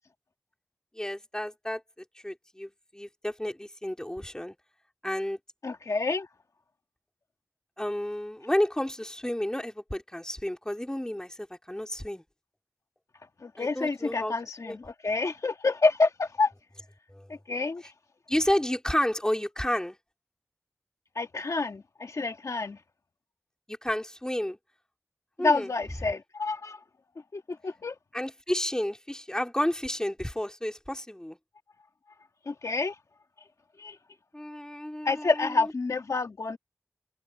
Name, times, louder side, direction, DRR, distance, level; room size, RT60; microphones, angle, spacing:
voice 1, 0.9-1.8 2.2-4.6 5.0-5.4 7.8-12.2 13.6-14.3 14.6-14.8 17.1-17.3 18.3-20.0 23.7-24.6 25.4-25.7 28.1-31.4 34.3-35.7, left 1 dB, 15° left, 3.7 m, -31 dB
voice 2, 5.6-6.3 13.4-16.5 17.3-17.8 21.1-22.8 25.4-26.8 27.3-27.9 32.5-32.9 33.8-34.0 35.0-36.6, left 3 dB, 75° left, 1.5 m, -28 dB
wide cardioid pair, 60°, 5 cm